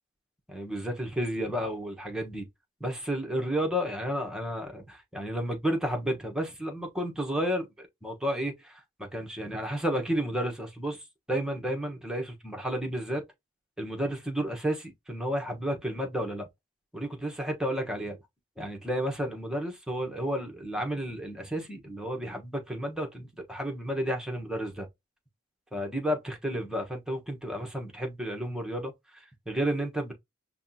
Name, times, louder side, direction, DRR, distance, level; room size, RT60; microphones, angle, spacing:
voice 1, 0.5-2.4 2.8-13.2 13.8-16.5 16.9-18.2 18.6-24.9 25.7-30.1, equal, 5° right, 1.1 m, -32 dB
5.7 x 2.3 x 2.7 m
head